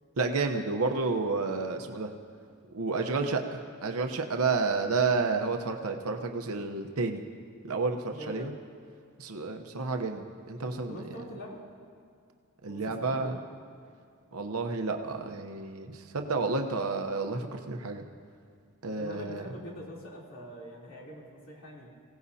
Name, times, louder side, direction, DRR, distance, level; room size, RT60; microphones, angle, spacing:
voice 1, 0.2-2.1 2.7-7.2 7.6-8.5 9.2-11.0 12.6-13.4 14.3-18.0 18.8-19.4, right 4 dB, 75° right, 4 dB, 0.9 m, -30 dB
voice 2, 8.1-8.5 10.9-11.6 12.6-13.5 18.8-21.9, equal, 65° left, -4 dB, 3.4 m, -44 dB
25.5 x 17.0 x 2.8 m, 2.2 s
head